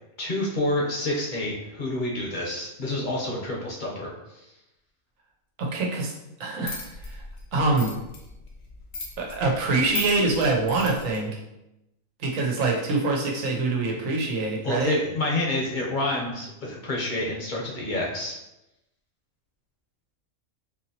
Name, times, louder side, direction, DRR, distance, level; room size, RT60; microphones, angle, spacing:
voice 1, 0.2-4.1 14.6-18.4, left 1 dB, 45° left, -2 dB, 0.8 m, -28 dB
voice 2, 5.6-6.1 6.4-7.2 7.5-7.9 9.2-11.4 12.2-15.0, right 3 dB, 70° right, 0 dB, 1.2 m, -25 dB
sound 1, 6.6-11.2, left 3 dB, 70° left, 1.2 m, -38 dB
4.3 x 2.9 x 2.8 m, 0.91 s
omnidirectional pair, 1.4 m